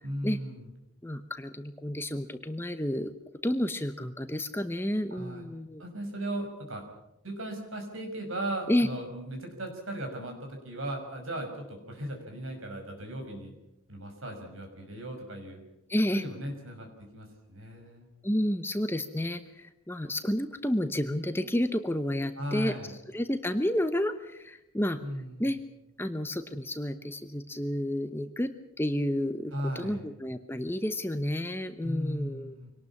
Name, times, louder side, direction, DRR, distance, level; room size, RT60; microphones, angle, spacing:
voice 1, 0.0-0.7 5.1-5.4 5.8-6.8 7.2-13.6 13.9-15.6 16.1-16.9 17.1-18.1 22.4-22.9 25.0-25.6 29.5-30.0 31.8-32.7, right 1 dB, 65° right, 4 dB, 5.8 m, -37 dB
voice 2, 1.0-3.1 3.4-5.8 8.7-8.9 15.9-16.2 18.2-22.7 23.1-25.0 25.4-25.6 26.0-32.6, left 1 dB, 10° left, 9 dB, 0.9 m, -30 dB
24.5 x 18.5 x 7.3 m, 0.90 s
head